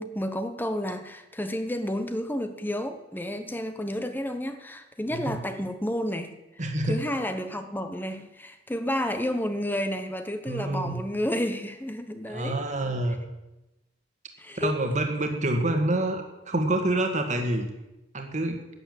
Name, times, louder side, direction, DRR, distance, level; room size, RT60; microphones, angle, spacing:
voice 1, 0.0-12.6 14.4-14.7, left 1 dB, 10° left, 8 dB, 1.0 m, -31 dB
voice 2, 6.6-7.0 10.5-11.0 12.3-13.2 14.6-17.7 18.1-18.6, right 1 dB, 40° right, 4 dB, 1.8 m, -27 dB
11.0 x 9.7 x 7.8 m, 0.97 s
head